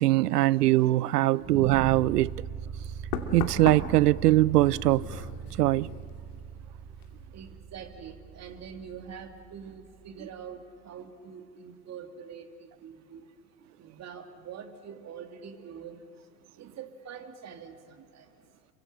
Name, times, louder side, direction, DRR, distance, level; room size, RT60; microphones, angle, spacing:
voice 1, 0.0-2.3 3.3-5.2 5.6-5.9, right 16 dB, 70° right, 0.6 m, -22 dB
sound 1, 1.4-10.4, right 6 dB, 10° right, 1.1 m, -41 dB
Knock, 2.1-2.3 3.1-6.6 6.9-7.3, left 8 dB, 60° left, 2.6 m, -38 dB
voice 2, 7.3-13.3 13.8-16.0 16.6-17.8 18.1-18.3, right 7 dB, 30° right, 2.3 m, -44 dB
28.0 x 24.0 x 6.6 m
hypercardioid pair, 90°, 50 cm